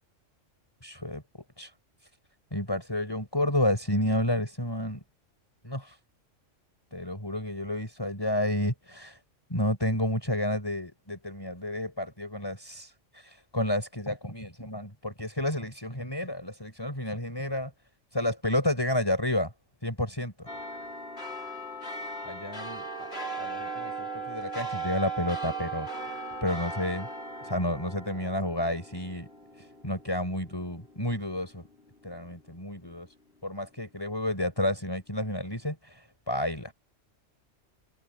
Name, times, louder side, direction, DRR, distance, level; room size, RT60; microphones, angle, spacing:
voice 1, 0.8-1.2 1.6-1.7 2.5-5.0 5.6-6.0 6.9-9.2 9.5-17.7 18.1-19.5 19.8-20.5 22.2-23.1 23.4-25.9 26.4-27.1 27.4-29.3 29.6-31.6 32.0-33.1 33.4-36.7, left 1 dB, 20° left, 6.3 m, -31 dB
sound 1, 20.5-31.2 31.6-31.7, right 3 dB, 55° left, 4.8 m, -38 dB
omnidirectional pair, 1.3 m